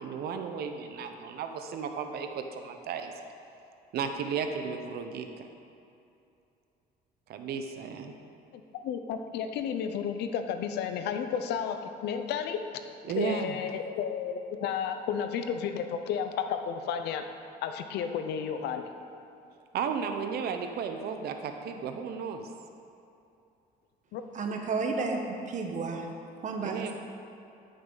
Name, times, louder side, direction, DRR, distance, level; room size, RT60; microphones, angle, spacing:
voice 1, 0.0-3.1 3.9-5.4 7.3-8.1 13.0-13.6 19.7-22.5 26.6-26.9, right 6 dB, 70° right, 6 dB, 0.8 m, -34 dB
voice 2, 8.5-12.7 13.2-17.2 17.6-18.9 24.1-24.2, left 7 dB, 80° left, 7 dB, 0.7 m, -32 dB
voice 3, 24.3-26.1 26.4-26.9, right 4 dB, 45° right, 3 dB, 1.2 m, -32 dB
13.0 x 6.6 x 4.0 m, 2.7 s
cardioid pair, 110°, 17 cm